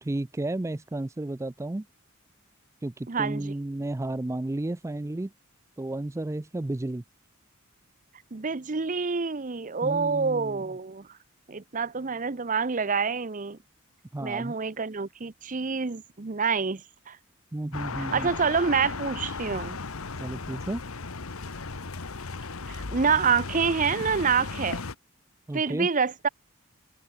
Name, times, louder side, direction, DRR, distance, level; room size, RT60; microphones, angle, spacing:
voice 1, 0.0-1.9 2.8-5.3 5.8-7.0 9.8-10.6 14.1-14.5 17.5-18.3 20.2-20.8 25.5-25.9, right 2 dB, 15° right, 0.4 m, -32 dB
voice 2, 3.1-3.5 8.3-11.1 11.5-13.6 14.2-17.2 18.0-19.8 22.7-24.8 25.5-26.3, right 5 dB, 40° right, 0.7 m, -27 dB
sound 1, 17.7-25.0, left 4 dB, 85° left, 1.3 m, -36 dB
head